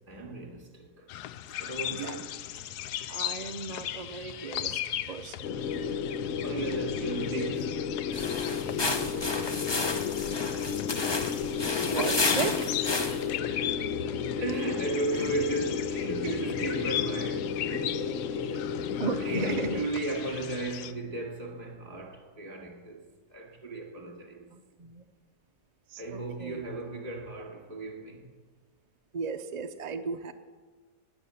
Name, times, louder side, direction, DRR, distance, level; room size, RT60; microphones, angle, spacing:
voice 1, 0.1-1.1 1.6-2.4 6.4-9.0 13.4-13.8 14.4-18.7 19.2-23.0 23.3-24.5 26.0-28.3, right 2 dB, 30° right, 2.6 m, -36 dB
sound 1, 1.1-20.9, left 11 dB, 90° left, 1.2 m, -38 dB
voice 2, 3.1-5.5 6.8-6.9 11.8-13.0 19.0-19.8 24.5-25.0 25.9-26.6 29.1-30.3, right 5 dB, 60° right, 0.4 m, -36 dB
sound 2, 5.4-19.8, left 7 dB, 60° left, 1.1 m, -32 dB
sound 3, 8.1-13.4, left 2 dB, 25° left, 0.5 m, -31 dB
19.0 x 8.4 x 7.1 m
omnidirectional pair, 1.7 m